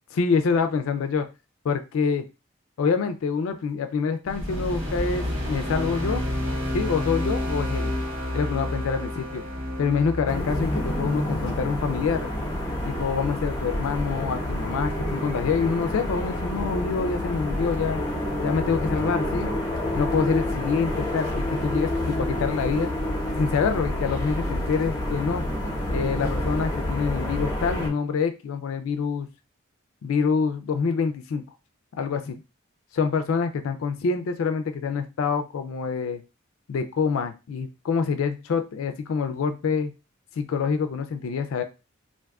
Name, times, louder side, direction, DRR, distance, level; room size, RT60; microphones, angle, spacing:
voice 1, 0.1-1.3 1.6-2.3 2.8-6.2 6.7-7.9 8.3-9.4 9.8-12.3 12.8-18.0 18.4-19.5 20.0-22.9 23.4-25.4 25.9-29.3 30.0-31.4 32.0-32.4 32.9-36.2 36.7-39.9 40.4-41.6, left 5 dB, 85° left, 8 dB, 0.4 m, -26 dB
sound 1, 4.2-14.7, left 1 dB, 70° right, 1.2 m, -31 dB
sound 2, 10.3-27.9, left 1 dB, 20° left, 0.7 m, -28 dB
2.5 x 2.3 x 3.4 m, 0.29 s
head